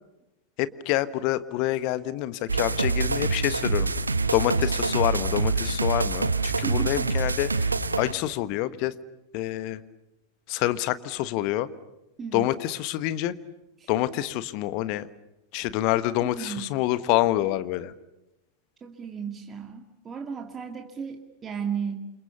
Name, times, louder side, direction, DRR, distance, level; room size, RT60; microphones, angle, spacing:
voice 1, 0.6-3.9 4.3-7.7 8.0-8.9 9.3-9.8 10.5-11.7 12.3-13.3 13.9-15.1 15.5-17.9, left 15 dB, 45° left, 14 dB, 1.4 m, -27 dB
sound 1, 2.5-8.1, right 3 dB, 80° right, 1.2 m, -26 dB
voice 2, 6.6-7.1 12.2-12.5 13.8-13.9 16.2-16.7 18.8-22.1, right 7 dB, 20° right, 4 dB, 2.3 m, -34 dB
29.5 x 28.5 x 7.0 m, 0.97 s
figure-of-eight pair, 90°, 0 cm